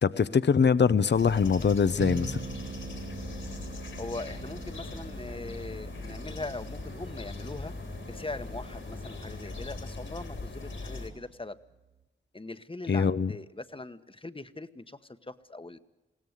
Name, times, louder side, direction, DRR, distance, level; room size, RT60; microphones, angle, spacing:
voice 1, 0.0-2.4 12.9-13.3, left 6 dB, 60° left, 15 dB, 0.7 m, -23 dB
sound 1, 1.1-11.1, left 3 dB, 75° left, 3.5 m, -40 dB
sound 2, 2.0-12.0, right 5 dB, 55° right, 1.0 m, -45 dB
voice 2, 4.0-7.7 8.1-11.6 12.3-15.8, left 2 dB, 25° left, 11 dB, 1.2 m, -41 dB
sound 3, 4.4-9.6, right 2 dB, 90° right, 5.6 m, -54 dB
21.0 x 16.5 x 8.0 m, 1.1 s
cardioid pair, 45°, 20 cm